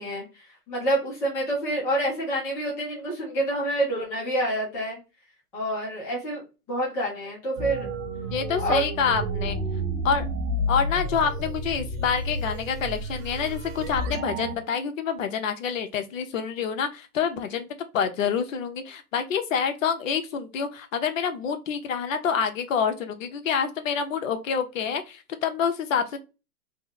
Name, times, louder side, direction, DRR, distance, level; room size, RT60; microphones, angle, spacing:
voice 1, 0.0-5.0 5.5-6.4 6.7-7.9 8.6-8.8, right 1 dB, 5° left, 0.4 m, -27 dB
sound 1, 7.6-14.6, right 1 dB, 60° right, 1.1 m, -30 dB
voice 2, 8.3-9.6 10.0-10.3 10.7-17.7 17.9-26.2, left 7 dB, 55° left, 0.8 m, -27 dB
3.1 x 2.1 x 3.7 m
hypercardioid pair, 135°, 46 cm